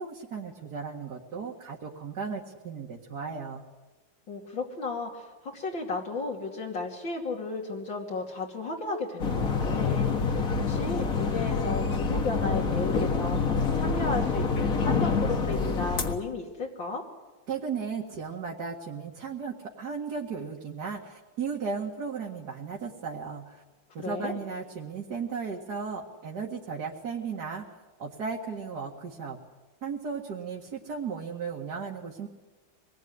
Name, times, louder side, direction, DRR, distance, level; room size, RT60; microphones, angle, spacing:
voice 1, 0.0-3.6 17.5-23.6 23.9-27.7 28.0-29.4 29.8-32.3, right 5 dB, 60° right, -2 dB, 2.5 m, -35 dB
voice 2, 4.3-5.3 5.5-17.0 24.0-24.4, left 3 dB, 85° left, -1 dB, 3.5 m, -34 dB
sound 1, 9.2-16.1, left 4 dB, 50° left, 2.0 m, -27 dB
25.0 x 20.5 x 9.6 m, 1.2 s
omnidirectional pair, 2.0 m